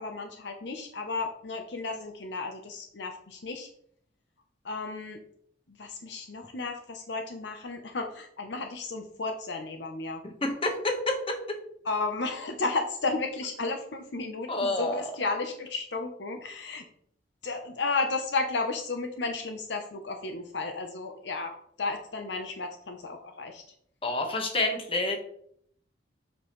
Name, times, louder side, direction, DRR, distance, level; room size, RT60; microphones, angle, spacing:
voice 1, 0.0-3.7 4.6-5.2 5.7-10.2 11.8-16.8 17.4-23.6, left 3 dB, 70° left, 5 dB, 0.7 m, -33 dB
voice 2, 10.4-11.6 14.5-15.1 24.0-25.2, left 2 dB, 30° left, 3 dB, 1.2 m, -28 dB
7.3 x 5.2 x 3.1 m, 0.65 s
head